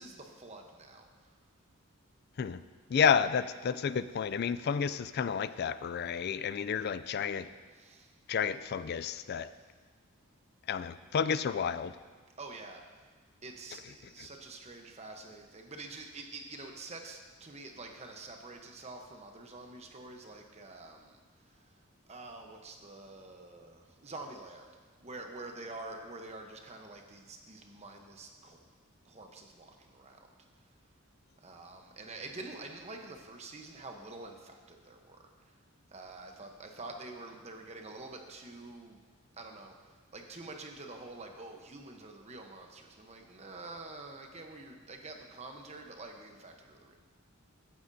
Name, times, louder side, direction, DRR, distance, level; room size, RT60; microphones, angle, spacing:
voice 1, 0.0-1.3 7.7-8.1 12.4-12.8 13.4-21.2 21.5-21.6 22.1-24.7 25.0-28.6 29.0-30.2 31.4-35.2 35.9-39.0 39.4-47.0, right 2 dB, 30° right, 3 dB, 0.9 m, -47 dB
voice 2, 2.9-7.5 8.3-9.5 10.7-11.9, left 7 dB, 50° left, 14 dB, 0.3 m, -30 dB
15.0 x 9.3 x 2.7 m, 1.5 s
head